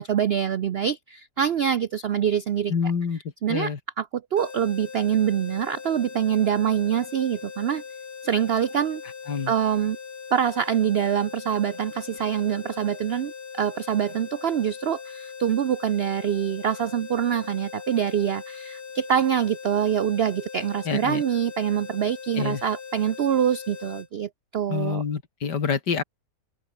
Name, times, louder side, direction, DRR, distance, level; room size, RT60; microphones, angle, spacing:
voice 1, 0.0-2.7 3.4-4.0 4.3-7.8 8.2-9.0 9.5-10.0 10.3-25.0, right 9 dB, 90° right, 0.5 m, -25 dB
voice 2, 2.7-3.2 3.5-3.8 9.3-9.5 20.8-21.2 22.3-22.6 24.7-26.0, left 6 dB, 80° left, 2.7 m, -27 dB
sound 1, 4.4-24.1, left 5 dB, 65° left, 2.6 m, -40 dB
open air
omnidirectional pair, 1.8 m